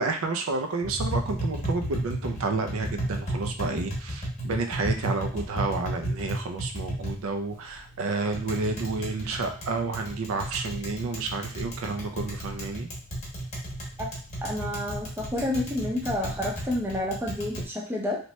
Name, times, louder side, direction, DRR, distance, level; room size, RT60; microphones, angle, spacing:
voice 1, 0.0-12.9, right 3 dB, 70° right, 5 dB, 0.4 m, -30 dB
Tap, 0.8-17.6, right 1 dB, 30° left, 0.9 m, -34 dB
voice 2, 14.4-18.2, left 1 dB, 10° right, -2 dB, 0.5 m, -29 dB
2.8 x 2.2 x 3.0 m, 0.40 s
head